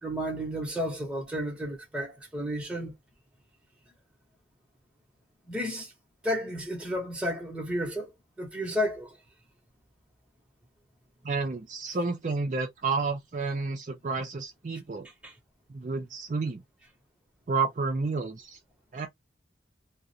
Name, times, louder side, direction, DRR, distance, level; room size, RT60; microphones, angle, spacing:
voice 1, 0.0-2.9 5.5-5.9 6.2-8.1 8.4-9.2 15.2-15.3, equal, 5° right, 0.8 m, -32 dB
voice 2, 11.2-15.1 15.7-16.6 17.5-18.6 18.9-19.1, right 4 dB, 40° right, 0.4 m, -30 dB
2.4 x 2.0 x 2.6 m
head